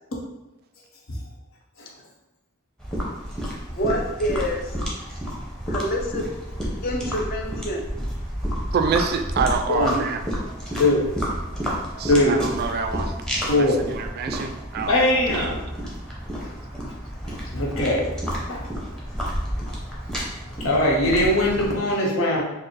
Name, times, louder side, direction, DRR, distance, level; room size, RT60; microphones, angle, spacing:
sound 1, 2.8-21.8, equal, 5° left, 0.7 m, -30 dB
voice 1, 3.7-4.7 5.7-6.3 6.8-7.8, equal, 45° left, 1 dB, 0.5 m, -27 dB
voice 2, 8.7-10.2 12.0-13.1 13.4-15.0 15.3-15.5, right 5 dB, 50° right, 6 dB, 0.3 m, -26 dB
voice 3, 9.7-10.0 10.8-11.0 12.1-12.4 13.5-13.8 14.9-15.6 17.5-18.1 18.5-18.6 20.6-22.4, left 1 dB, 75° left, -2 dB, 0.9 m, -20 dB
4.5 x 2.1 x 3.2 m, 0.95 s
head